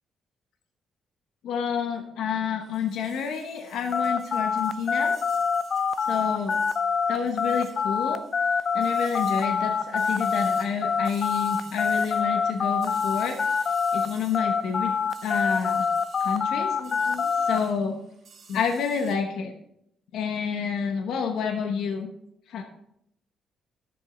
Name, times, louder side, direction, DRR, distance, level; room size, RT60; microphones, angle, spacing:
voice 1, 1.4-5.2 6.1-6.6 7.1-8.2 8.7-13.4 13.9-14.9 15.2-15.9 16.2-18.0 18.5-19.5 20.1-22.1 22.5-22.6, left 6 dB, 80° left, 4 dB, 1.0 m, -29 dB
sound 1, 2.6-19.1, right 4 dB, 65° right, 2.6 m, -52 dB
sound 2, 3.9-14.1 14.3-17.6, left 6 dB, 50° left, 0.5 m, -25 dB
11.5 x 7.2 x 3.8 m, 0.75 s
cardioid pair, 90°, 0 cm